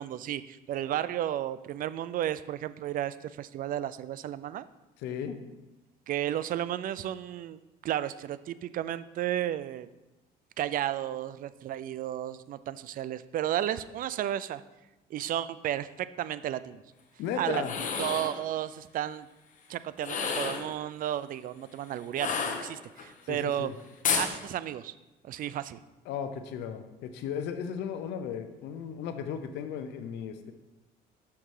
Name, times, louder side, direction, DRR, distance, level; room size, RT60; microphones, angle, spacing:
voice 1, 0.0-4.6 6.1-9.9 10.6-14.6 15.1-16.8 17.4-17.7 18.0-19.3 19.7-23.7 24.2-24.9 25.2-25.8, right 11 dB, 55° right, 15 dB, 0.4 m, -33 dB
voice 2, 5.0-5.4 17.2-17.7 23.2-23.7 26.1-30.5, left 8 dB, 85° left, 9 dB, 0.8 m, -35 dB
sound 1, 17.6-18.4 20.0-20.7 22.2-23.1 24.0-24.3, left 5 dB, 50° left, 1.0 m, -30 dB
6.6 x 5.8 x 4.8 m, 1.0 s
cardioid pair, 110°, 17 cm